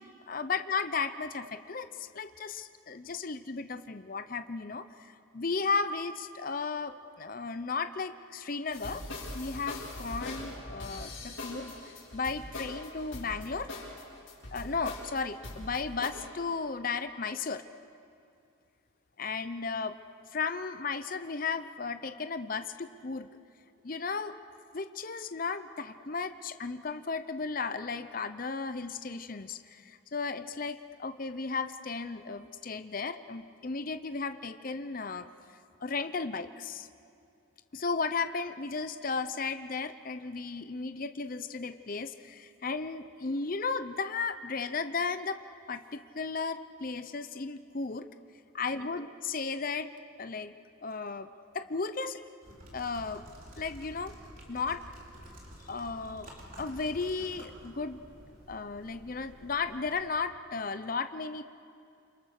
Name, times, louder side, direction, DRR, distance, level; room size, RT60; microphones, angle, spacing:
voice 1, 0.3-9.0 9.3-11.7 12.1-13.7 14.5-17.6 19.2-20.0 20.3-23.3 23.8-24.4 24.7-35.3 35.8-36.9 37.7-45.4 45.7-48.1 48.5-49.9 50.2-50.5 50.8-51.3 51.5-52.2 52.7-53.2 53.6-54.1 54.5-54.8 55.7-56.3 56.6-58.0 58.5-61.4, left 4 dB, 40° left, 10 dB, 0.6 m, -35 dB
sound 1, 8.7-16.1, left 2 dB, 65° left, 5.9 m, -42 dB
sound 2, 52.4-60.0, equal, 40° right, 4.3 m, -50 dB
29.0 x 24.5 x 6.6 m, 2.5 s
head